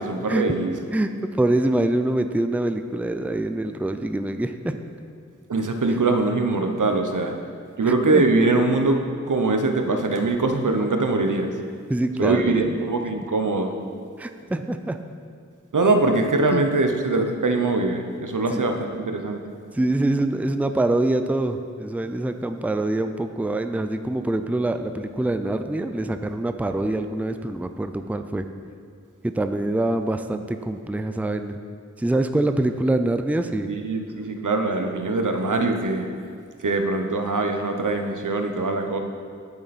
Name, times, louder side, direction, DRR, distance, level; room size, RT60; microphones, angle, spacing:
voice 1, 0.0-0.7 5.5-7.4 7.8-9.0 9.2-11.5 12.2-13.7 15.7-19.4 33.7-36.1 36.6-39.0, right 3 dB, 90° right, 5 dB, 0.8 m, -22 dB
voice 2, 0.9-4.8 7.9-8.2 11.9-12.8 14.2-15.0 16.5-16.6 18.5-18.6 19.7-28.4 29.2-31.6 32.0-33.7, right 1 dB, 5° right, 8 dB, 0.4 m, -25 dB
9.7 x 6.8 x 4.1 m, 2.2 s
wide cardioid pair, 50°, 30 cm